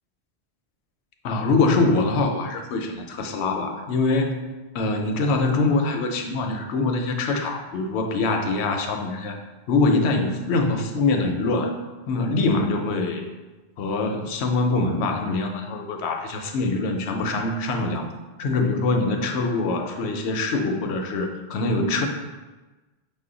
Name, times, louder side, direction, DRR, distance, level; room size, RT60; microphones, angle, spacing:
voice 1, 1.2-4.4 4.7-9.4 9.7-11.7 12.1-13.3 13.8-18.1 18.4-22.1, left 3 dB, 80° left, 4 dB, 0.8 m, -24 dB
5.5 x 2.1 x 3.8 m, 1.2 s
omnidirectional pair, 1.1 m